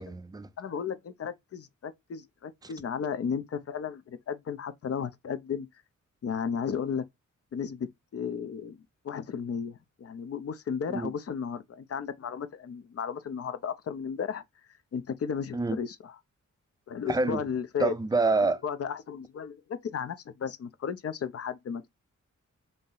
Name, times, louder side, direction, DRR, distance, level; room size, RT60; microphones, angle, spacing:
voice 1, 0.0-0.5 2.6-2.7 10.9-11.1 15.5-15.8 17.1-17.4 17.8-18.6, right 3 dB, 15° right, 0.4 m, -27 dB
voice 2, 0.6-5.7 6.2-7.0 7.5-8.8 9.0-14.4 14.9-16.2 16.9-17.9 18.6-21.9, left 7 dB, 50° left, 0.5 m, -34 dB
2.6 x 2.0 x 3.7 m
cardioid pair, 70°, 31 cm